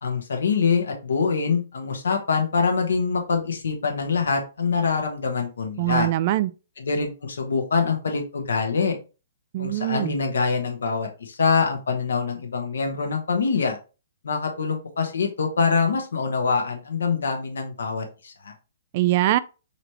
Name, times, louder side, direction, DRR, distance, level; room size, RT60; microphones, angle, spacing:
voice 1, 0.0-6.1 6.8-9.0 9.6-13.8 14.2-18.5, left 5 dB, 80° left, 1.1 m, -24 dB
voice 2, 5.8-6.5 9.5-10.2 18.9-19.4, right 15 dB, 45° right, 0.3 m, -22 dB
4.0 x 3.2 x 2.9 m
hypercardioid pair, 130°, 0 cm